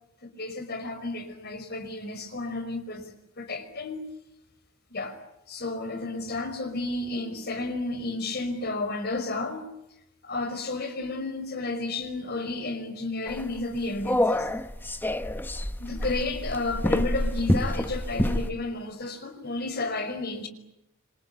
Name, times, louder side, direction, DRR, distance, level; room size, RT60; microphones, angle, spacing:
voice 1, 0.2-3.1 3.4-4.0 4.9-5.2 5.5-9.7 10.2-14.5 15.8-20.5, left 2 dB, 50° left, 5.2 m, -32 dB
sound 1, 13.3-18.5, left 1 dB, 10° left, 1.0 m, -27 dB
27.0 x 26.0 x 8.5 m
head